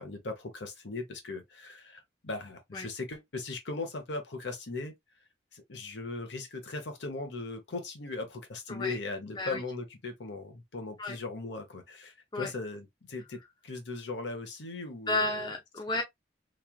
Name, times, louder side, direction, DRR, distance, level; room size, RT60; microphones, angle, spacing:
voice 1, 0.0-4.9 5.5-15.3, left 3 dB, 70° left, 0.9 m, -38 dB
voice 2, 15.1-16.0, left 2 dB, 25° left, 0.5 m, -32 dB
3.1 x 2.4 x 2.2 m
head